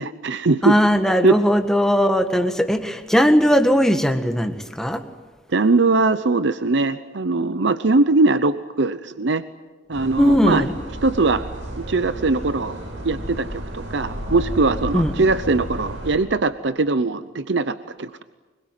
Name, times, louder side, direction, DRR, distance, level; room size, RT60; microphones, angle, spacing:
voice 1, 0.0-0.8 1.2-1.4 5.5-9.4 9.9-10.6 11.0-11.4 11.7-12.8 13.0-18.2, right 3 dB, 65° right, 12 dB, 0.8 m, -21 dB
voice 2, 0.6-5.0 10.2-10.7 14.9-15.1, equal, 5° left, 6 dB, 1.7 m, -18 dB
sound 1, 9.9-16.2, right 1 dB, 85° right, 6.5 m, -32 dB
24.5 x 22.5 x 9.2 m, 1.3 s
head